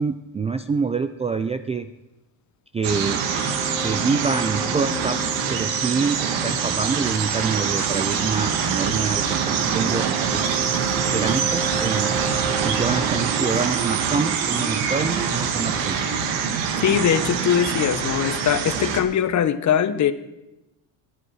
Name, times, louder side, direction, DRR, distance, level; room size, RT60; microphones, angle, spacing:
voice 1, 0.0-1.9 2.7-9.4 9.7-10.1 10.3-10.5 11.1-16.1, right 5 dB, 15° right, 10 dB, 0.4 m, -26 dB
sound 1, 2.8-19.0, right 7 dB, 70° right, 2.1 m, -24 dB
sound 2, 3.1-14.7, right 2 dB, 10° left, 1.7 m, -35 dB
voice 2, 16.8-20.1, left 9 dB, 40° left, 12 dB, 1.0 m, -21 dB
25.0 x 8.8 x 4.8 m, 0.95 s
supercardioid pair, 110°, 46 cm